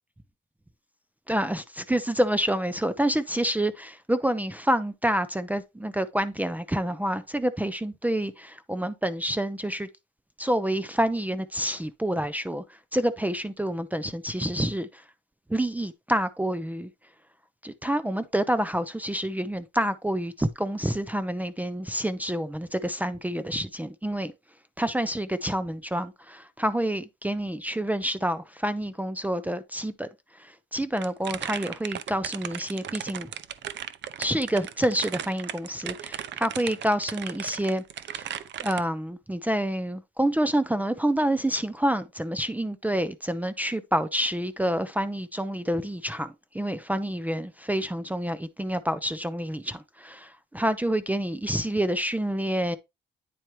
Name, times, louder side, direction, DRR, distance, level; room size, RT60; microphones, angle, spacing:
voice 1, 1.3-9.9 10.4-15.0 15.5-16.9 17.6-24.3 24.8-33.3 34.2-37.8 38.2-52.8, right 1 dB, 10° right, 0.6 m, -28 dB
sound 1, 31.0-38.8, right 10 dB, 65° right, 0.7 m, -36 dB
9.3 x 4.4 x 3.2 m
cardioid pair, 90°, 20 cm